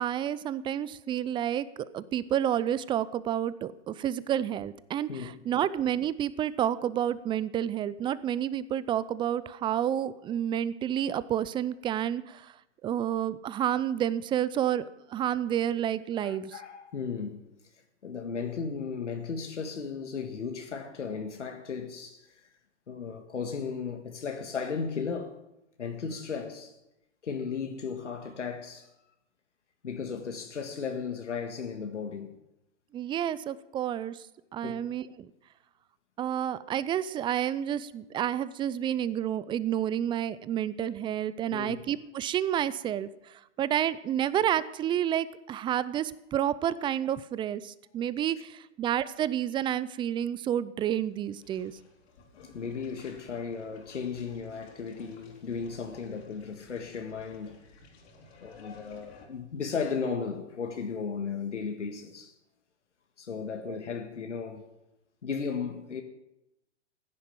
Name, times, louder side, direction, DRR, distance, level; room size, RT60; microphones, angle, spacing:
voice 1, 0.0-1.6 1.9-12.5 12.8-14.8 15.1-16.5 32.9-34.2 34.5-35.3 36.2-51.7 63.7-63.8, right 10 dB, 15° right, 0.4 m, -30 dB
voice 2, 5.1-5.4 16.2-17.4 18.0-22.4 22.9-25.4 25.8-26.8 27.2-28.9 29.8-32.4 34.6-34.8 41.5-41.8 52.5-57.8 58.4-62.3 63.2-64.7 65.2-66.0, left 5 dB, 85° left, 1.8 m, -35 dB
sound 1, 50.8-59.3, left 4 dB, 60° left, 3.8 m, -54 dB
15.5 x 10.0 x 7.3 m
hypercardioid pair, 115°, 35 cm